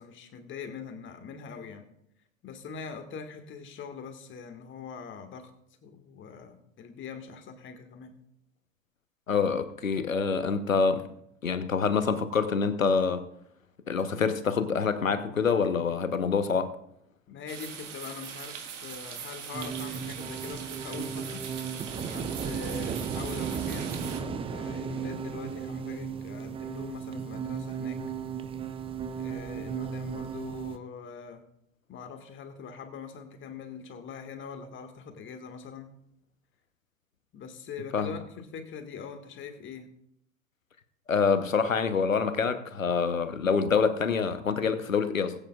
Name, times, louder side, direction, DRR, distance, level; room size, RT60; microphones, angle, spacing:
voice 1, 0.0-1.8 2.4-5.5 5.8-8.1 17.3-21.5 21.9-28.0 29.2-31.4 31.9-35.9 37.3-39.9, left 6 dB, 30° left, 6 dB, 1.8 m, -43 dB
voice 2, 9.3-11.0 11.4-13.2 13.9-16.7 37.9-38.1 41.1-45.3, left 5 dB, 80° left, 11 dB, 1.0 m, -26 dB
sound 1, 17.5-24.2, right 7 dB, 65° right, 1.8 m, -41 dB
sound 2, 19.5-30.8, right 6 dB, 15° right, 0.5 m, -35 dB
21.0 x 8.7 x 2.4 m, 0.73 s
figure-of-eight pair, 80°, 39 cm